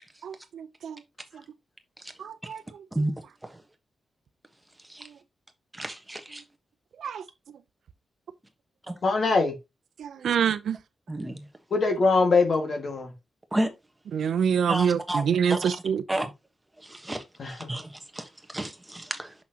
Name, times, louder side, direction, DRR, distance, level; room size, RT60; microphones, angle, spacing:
voice 1, 0.2-1.0 1.3-1.4 2.2-2.8 5.0-5.1 7.0-7.2 10.0-10.8 14.1-16.0, right 7 dB, 85° right, 0.6 m, -26 dB
voice 2, 5.7-6.4 8.9-9.0 11.1-11.5 13.5-13.7 14.7-15.2 15.5-15.7 16.1-16.3 16.8-19.3, right 1 dB, 10° right, 1.3 m, -31 dB
voice 3, 9.0-9.5 11.7-13.1 17.4-17.7, left 3 dB, 55° left, 1.8 m, -23 dB
6.3 x 5.8 x 2.9 m
cardioid pair, 95°, 0 cm